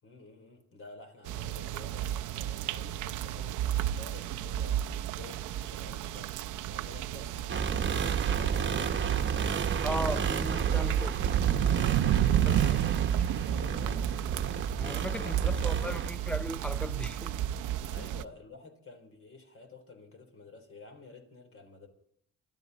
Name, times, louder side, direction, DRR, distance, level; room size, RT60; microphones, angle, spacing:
voice 1, 0.0-6.4 6.7-10.4 10.7-11.0 12.0-14.4 15.0-16.1 17.9-21.9, left 3 dB, 45° left, 3.7 m, -51 dB
sound 1, 1.2-18.2, right 11 dB, 85° right, 0.7 m, -31 dB
sound 2, 7.5-16.1, right 6 dB, 40° right, 1.2 m, -32 dB
voice 2, 9.8-11.1 12.4-12.8 14.8-17.4 18.0-18.1, equal, 5° left, 0.5 m, -37 dB
25.0 x 12.5 x 4.1 m
cardioid pair, 90°, 30 cm